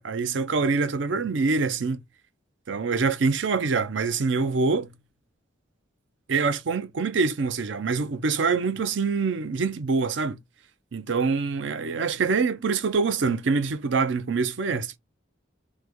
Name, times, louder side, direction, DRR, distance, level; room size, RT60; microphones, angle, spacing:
voice 1, 0.0-2.0 2.7-4.9 6.3-10.4 10.9-15.0, right 4 dB, 70° right, 0.5 m, -25 dB
3.1 x 2.2 x 3.4 m
head